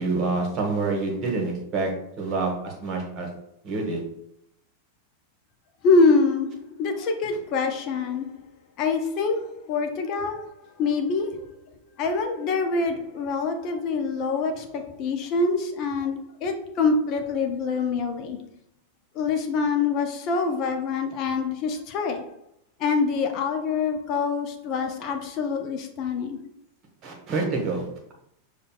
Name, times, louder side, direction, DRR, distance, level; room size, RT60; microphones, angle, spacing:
voice 1, 0.0-1.9 2.2-3.3 3.6-4.0 27.0-28.1, right 3 dB, 35° right, 1 dB, 1.1 m, -27 dB
voice 2, 5.8-8.3 8.8-10.5 10.8-11.5 12.0-18.4 19.2-22.3 22.8-26.4, left 4 dB, 40° left, 4 dB, 0.5 m, -25 dB
6.5 x 2.3 x 2.3 m, 0.76 s
figure-of-eight pair, 90°, 0 cm